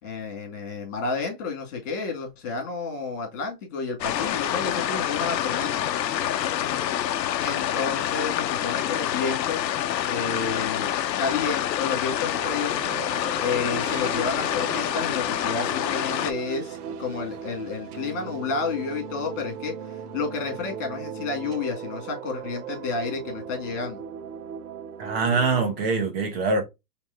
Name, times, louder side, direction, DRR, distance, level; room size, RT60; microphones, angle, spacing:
voice 1, 0.0-5.8 7.4-9.8 10.1-10.9 11.2-12.8 13.4-19.7 20.1-24.0, left 4 dB, 50° left, 2.4 m, -30 dB
sound 1, 4.0-16.3, left 11 dB, 90° left, 0.7 m, -27 dB
sound 2, 12.3-25.7, right 7 dB, 65° right, 0.8 m, -38 dB
voice 2, 25.0-26.6, right 4 dB, 35° right, 1.3 m, -24 dB
4.6 x 3.4 x 2.7 m
hypercardioid pair, 160°, 49 cm